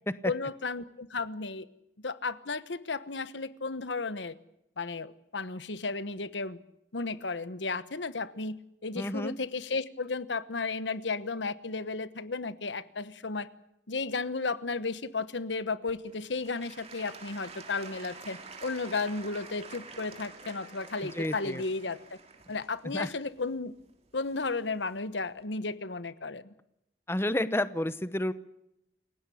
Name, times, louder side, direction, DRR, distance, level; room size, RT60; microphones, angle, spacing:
voice 1, 0.2-1.7 2.0-4.3 4.8-6.6 6.9-13.5 13.9-22.2 22.5-23.7 24.1-26.5, left 3 dB, 85° left, 14 dB, 1.2 m, -34 dB
voice 2, 9.0-9.4 21.1-21.6 22.8-23.1 27.1-28.3, left 1 dB, 15° left, 13 dB, 0.9 m, -30 dB
Applause / Crowd, 15.9-24.8 25.4-25.5, right 4 dB, 35° right, 3.1 m, -48 dB
28.5 x 16.5 x 8.5 m, 0.82 s
head